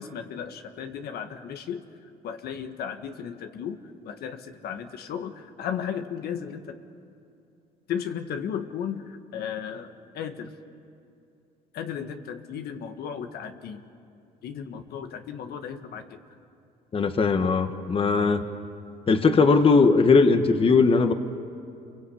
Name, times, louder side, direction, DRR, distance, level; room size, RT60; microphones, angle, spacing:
voice 1, 0.0-1.8 2.2-3.8 4.0-6.8 7.9-10.5 11.7-13.9 14.4-16.2 19.3-19.4, left 8 dB, 70° left, 7 dB, 1.6 m, -35 dB
voice 2, 16.9-18.4 19.1-21.1, left 4 dB, 35° left, 8 dB, 1.4 m, -19 dB
28.0 x 22.5 x 8.7 m, 2.6 s
cardioid pair, 110°, 17 cm